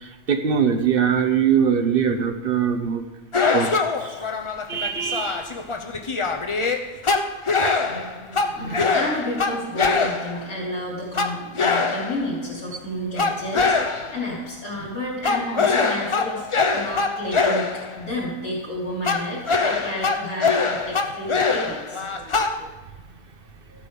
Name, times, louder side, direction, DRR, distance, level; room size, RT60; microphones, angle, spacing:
voice 1, 0.0-3.0 3.5-4.1 4.7-5.4 7.9-8.9 22.1-22.2, right 7 dB, 45° right, 7 dB, 1.0 m, -23 dB
sound 1, 3.3-10.5 11.1-12.4 13.2-14.2 15.2-18.0 19.0-22.6, left 4 dB, 35° left, 0.5 m, -23 dB
voice 2, 8.5-16.5 16.7-22.0, left 1 dB, 70° left, -8 dB, 3.5 m, -31 dB
14.0 x 8.4 x 5.3 m, 1.2 s
omnidirectional pair, 1.5 m